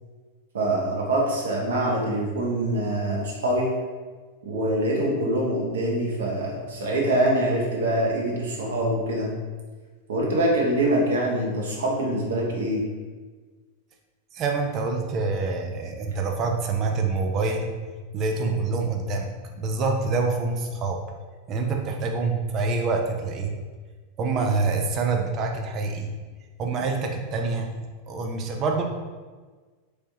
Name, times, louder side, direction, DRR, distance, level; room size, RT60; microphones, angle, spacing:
voice 1, 0.5-3.7 4.4-9.3 10.1-12.8, right 1 dB, 60° right, -2 dB, 1.0 m, -24 dB
voice 2, 14.3-17.8 18.1-21.0 21.5-23.6 24.2-26.1 26.6-27.8 28.1-28.8, right 3 dB, 35° right, 3 dB, 0.5 m, -26 dB
4.3 x 3.2 x 2.7 m, 1.4 s
figure-of-eight pair, 90°, 0 cm